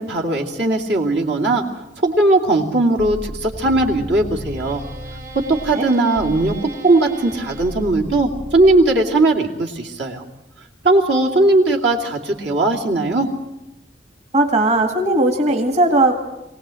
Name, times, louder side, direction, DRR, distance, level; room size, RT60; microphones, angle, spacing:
voice 1, 0.0-1.6 2.0-4.8 5.3-10.2 10.8-13.3, right 2 dB, 70° right, -1 dB, 2.7 m, -18 dB
sound 1, 3.0-9.2, right 1 dB, 55° right, 3.9 m, -34 dB
voice 2, 14.3-16.2, right 2 dB, 40° right, 2 dB, 2.0 m, -17 dB
23.5 x 17.5 x 7.7 m, 0.97 s
head